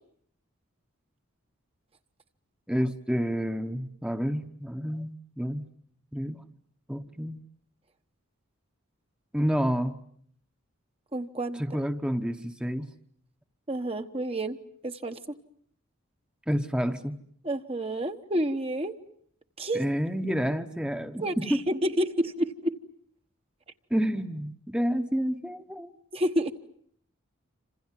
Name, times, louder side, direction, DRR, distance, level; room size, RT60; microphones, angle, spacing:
voice 1, 2.7-5.7 6.1-6.4 6.9-7.4 9.3-10.0 11.6-12.9 16.5-17.2 19.7-21.6 23.9-25.9, equal, 5° right, 7 dB, 1.1 m, -29 dB
voice 2, 11.1-11.8 13.7-14.6 14.8-15.2 17.4-19.0 19.6-19.9 21.2-22.8 26.1-26.5, right 1 dB, 25° right, 7 dB, 1.1 m, -29 dB
27.5 x 27.0 x 7.6 m, 0.64 s
head